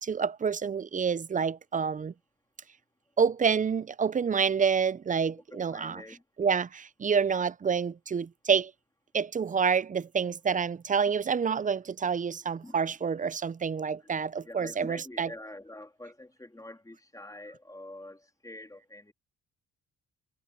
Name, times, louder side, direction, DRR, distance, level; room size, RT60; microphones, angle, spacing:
voice 1, 0.0-2.1 3.2-6.0 6.4-8.7 9.1-15.3, right 6 dB, 25° right, 0.5 m, -28 dB
voice 2, 5.5-6.2 12.6-12.8 14.0-14.1 14.4-19.1, left 1 dB, 10° left, 3.2 m, -46 dB
cardioid pair, 90°, 30 cm